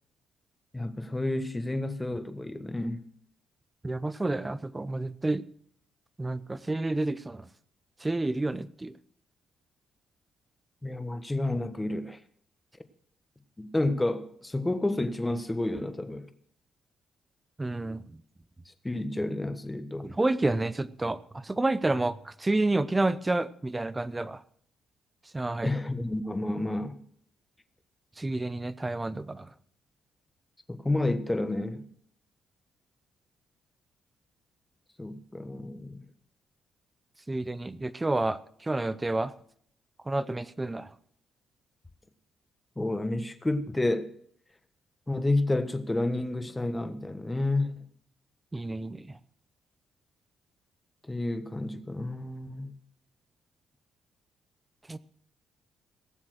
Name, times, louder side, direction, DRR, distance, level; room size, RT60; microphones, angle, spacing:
voice 1, 0.7-3.0 10.8-12.2 13.6-16.3 18.8-20.1 25.6-27.0 30.7-31.8 35.0-36.1 42.8-44.1 45.1-47.7 51.1-52.7, left 2 dB, 15° left, 1.3 m, -30 dB
voice 2, 3.8-5.4 6.2-7.4 8.0-8.9 17.6-18.0 20.0-24.4 25.3-25.7 28.2-29.5 37.3-39.3 40.1-40.9 48.5-49.1 54.9-55.0, right 2 dB, 15° right, 0.7 m, -29 dB
17.5 x 7.3 x 6.4 m
cardioid pair, 90°, 0 cm